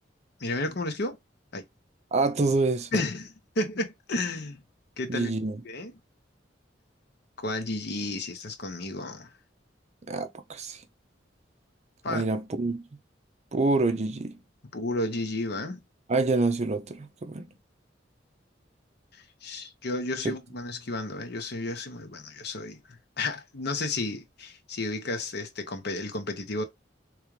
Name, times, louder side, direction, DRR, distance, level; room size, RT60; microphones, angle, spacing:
voice 1, 0.4-1.2 1.5-1.6 2.9-4.6 5.0-5.3 5.6-5.9 7.4-9.3 12.0-12.2 14.7-15.8 19.1-26.6, left 2 dB, 60° left, 0.9 m, -32 dB
voice 2, 2.1-3.0 5.1-5.6 10.1-10.8 12.1-12.8 13.5-14.4 16.1-17.5 20.2-20.3, right 3 dB, 35° right, 0.6 m, -27 dB
3.5 x 3.3 x 3.2 m
head